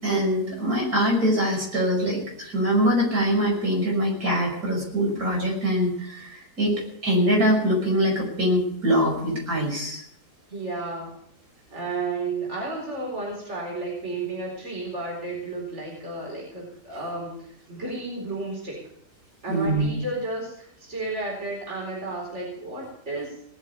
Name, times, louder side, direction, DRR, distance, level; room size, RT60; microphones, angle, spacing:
voice 1, 0.0-10.0 19.5-19.9, equal, 60° right, -2 dB, 6.4 m, -23 dB
voice 2, 10.5-11.1 11.7-18.8 19.4-23.3, right 2 dB, 40° right, -4 dB, 4.6 m, -32 dB
19.5 x 7.3 x 9.3 m, 0.70 s
omnidirectional pair, 1.8 m